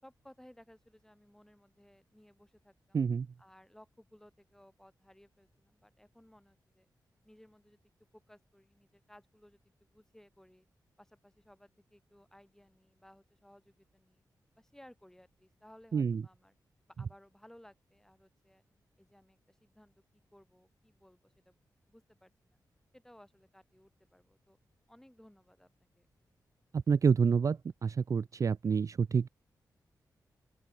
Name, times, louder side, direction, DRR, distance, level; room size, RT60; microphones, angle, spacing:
voice 1, 0.0-3.0 3.4-6.9 7.2-7.8 8.1-10.7 11.0-14.2 14.6-16.5 16.9-18.6 19.0-20.0 20.3-21.6 21.9-22.6 22.9-24.6 24.9-26.1, left 1 dB, 5° left, 7.6 m, -60 dB
voice 2, 2.9-3.3 15.9-16.2 26.7-29.3, right 6 dB, 50° right, 0.4 m, -28 dB
open air
cardioid pair, 75°, 7 cm